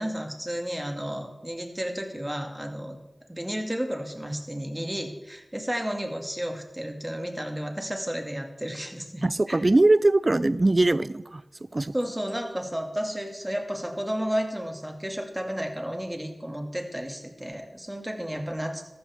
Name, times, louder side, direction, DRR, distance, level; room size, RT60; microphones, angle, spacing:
voice 1, 0.0-3.0 3.3-9.6 11.9-18.8, equal, 15° right, 3 dB, 2.3 m, -32 dB
voice 2, 9.2-11.2 11.7-11.9, right 2 dB, 45° right, 17 dB, 0.5 m, -21 dB
13.5 x 12.5 x 3.6 m, 0.97 s
cardioid pair, 45°, 0 cm